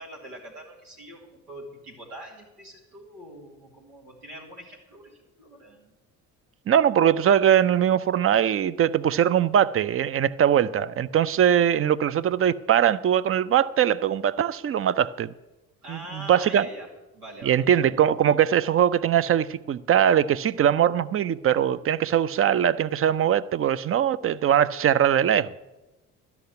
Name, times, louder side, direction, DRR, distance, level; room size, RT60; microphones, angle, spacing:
voice 1, 0.0-5.9 15.8-17.8, right 1 dB, 90° right, 2.4 m, -43 dB
voice 2, 6.7-15.3 15.9-16.7 17.4-25.6, right 9 dB, 30° right, 0.5 m, -21 dB
13.0 x 5.9 x 9.3 m
hypercardioid pair, 45°, 44 cm